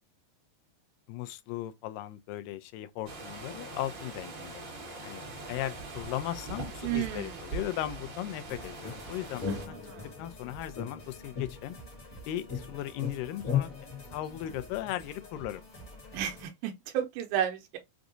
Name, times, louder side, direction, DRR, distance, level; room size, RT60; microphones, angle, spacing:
voice 1, 1.1-4.7 5.0-9.8 10.0-11.8 12.3-13.7 14.1-15.6, left 13 dB, 85° left, 2.2 m, -37 dB
sound 1, 3.1-9.7, right 3 dB, 45° right, 1.8 m, -42 dB
voice 2, 6.8-7.4 9.5-10.1 16.1-17.8, right 10 dB, 90° right, 2.3 m, -33 dB
sound 2, 8.5-16.5, equal, 40° left, 1.2 m, -49 dB
sound 3, 8.8-10.3 10.7-12.2 12.5-15.0, left 8 dB, 60° left, 0.9 m, -36 dB
5.9 x 2.6 x 2.5 m
omnidirectional pair, 3.9 m